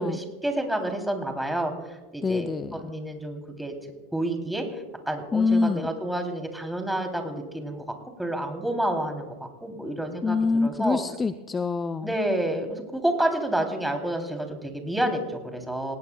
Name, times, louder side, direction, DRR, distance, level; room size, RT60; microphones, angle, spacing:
voice 1, 0.0-1.7 2.1-2.5 2.8-3.7 4.1-4.6 5.1-7.8 8.2-9.4 9.6-11.0 12.0-16.0, right 1 dB, 5° right, 3 dB, 3.3 m, -29 dB
voice 2, 2.2-2.8 5.3-5.9 10.2-12.2, left 4 dB, 20° left, 12 dB, 0.6 m, -25 dB
28.0 x 19.0 x 2.4 m, 1.1 s
figure-of-eight pair, 85°, 0 cm